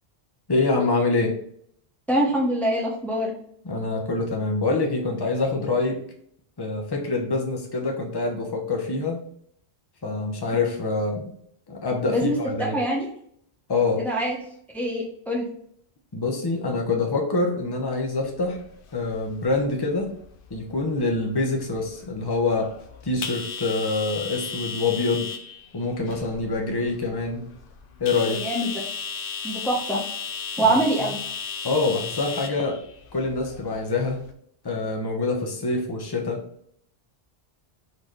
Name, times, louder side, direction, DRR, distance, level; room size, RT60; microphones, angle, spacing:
voice 1, 0.5-1.3 3.6-6.0 6.6-9.2 10.0-11.3 11.7-12.8 13.7-14.1 16.1-18.6 18.9-20.1 20.5-22.7 23.0-25.3 25.7-27.5 28.0-28.4 30.6-30.7 31.6-32.8 33.1-34.3 34.6-36.4, left 3 dB, 25° left, 1 dB, 0.9 m, -25 dB
voice 2, 2.1-3.3 12.1-13.1 14.0-14.4 14.7-15.5 28.2-28.7 29.4-30.0 30.6-31.2, right 1 dB, ahead, -3 dB, 1.1 m, -24 dB
sound 1, 18.2-34.3, left 5 dB, 60° left, 0.8 m, -36 dB
4.2 x 3.9 x 3.2 m, 0.66 s
omnidirectional pair, 1.1 m